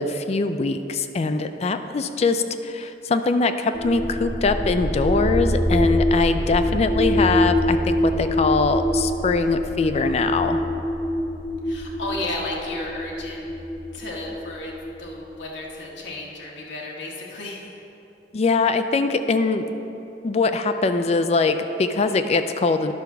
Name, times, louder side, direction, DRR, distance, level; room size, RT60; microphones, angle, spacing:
voice 1, 0.0-10.6 18.3-19.6 20.2-22.9, left 3 dB, 35° left, 9 dB, 0.4 m, -22 dB
sound 1, 3.7-15.5, left 1 dB, 5° left, 1.6 m, -24 dB
voice 2, 11.6-13.5 13.9-14.7 15.0-17.7, left 2 dB, 85° left, -3 dB, 1.2 m, -33 dB
11.0 x 4.6 x 5.9 m, 2.9 s
head